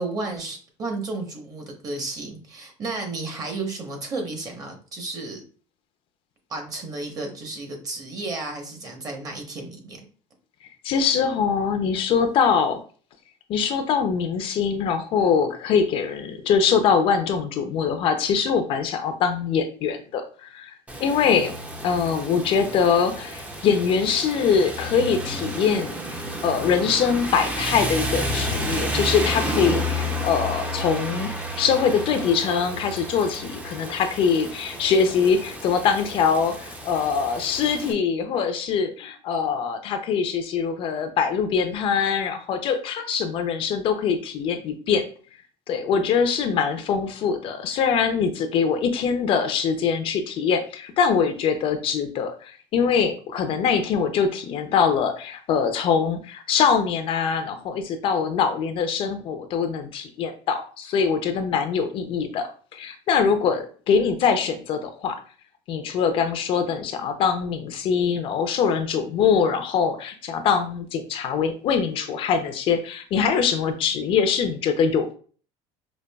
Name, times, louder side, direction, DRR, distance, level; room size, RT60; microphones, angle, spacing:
voice 1, 0.0-5.4 6.5-10.1, right 3 dB, 30° right, 3 dB, 0.9 m, -32 dB
voice 2, 10.8-12.8 13.5-20.7 21.0-21.5 21.8-25.9 26.4-31.3 31.6-45.0 45.7-65.2 65.7-75.1, left 6 dB, 45° left, 7 dB, 0.5 m, -23 dB
Rain, 20.9-37.9, equal, 10° right, 0.5 m, -31 dB
5.1 x 2.3 x 2.3 m, 0.41 s
cardioid pair, 140°, 13 cm